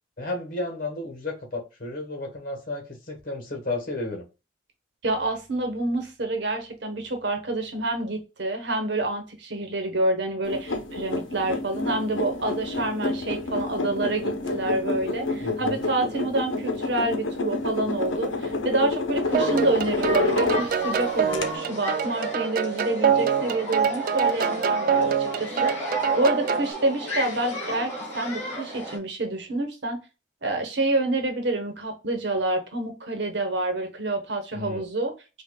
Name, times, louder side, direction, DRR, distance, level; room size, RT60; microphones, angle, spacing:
voice 1, 0.2-4.2 15.4-15.8 34.5-34.8, left 2 dB, 45° left, 1.3 m, -33 dB
voice 2, 5.0-30.0 30.4-35.1, right 2 dB, 60° right, 1.0 m, -28 dB
sound 1, 10.4-20.9 21.3-21.4, left 3 dB, 80° left, 0.8 m, -29 dB
sound 2, 19.3-29.0, equal, 10° left, 1.6 m, -34 dB
sound 3, 19.3-26.7, right 7 dB, 45° right, 0.3 m, -25 dB
5.6 x 2.4 x 2.2 m
head